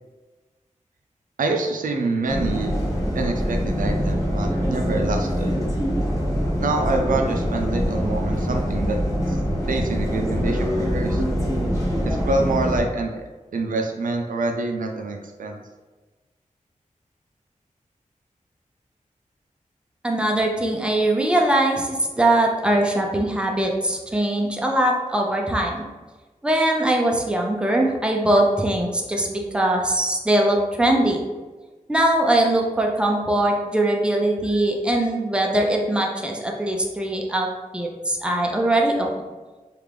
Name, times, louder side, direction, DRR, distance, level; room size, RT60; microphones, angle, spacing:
voice 1, 1.4-2.8 3.1-5.5 6.6-9.0 9.3-9.4 9.7-11.2 12.0-13.2 13.5-15.6, right 2 dB, 90° right, 3 dB, 0.4 m, -26 dB
sound 1, 2.3-12.8, equal, 25° left, 0.9 m, -24 dB
voice 2, 20.0-25.8 26.4-31.2 31.9-37.5 37.7-39.2, right 1 dB, 5° right, 0 dB, 0.5 m, -21 dB
3.3 x 2.4 x 3.3 m, 1.2 s
wide cardioid pair, 95°, 13 cm